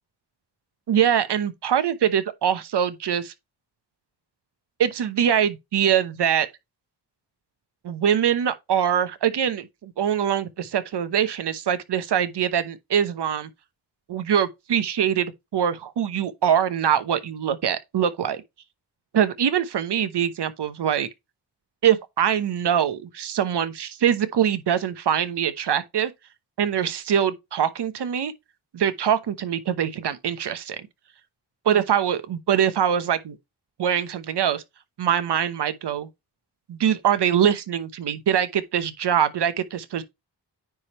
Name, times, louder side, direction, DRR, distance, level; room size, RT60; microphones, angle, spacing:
voice 1, 0.9-3.3 4.8-6.5 7.8-13.5 14.1-18.4 19.1-21.1 21.8-26.1 26.6-28.3 28.7-30.9 31.6-33.4 33.8-34.6 35.0-36.1 36.7-40.0, right 9 dB, 70° right, 1.0 m, -23 dB
9.5 x 3.4 x 4.3 m
cardioid pair, 75°, 42 cm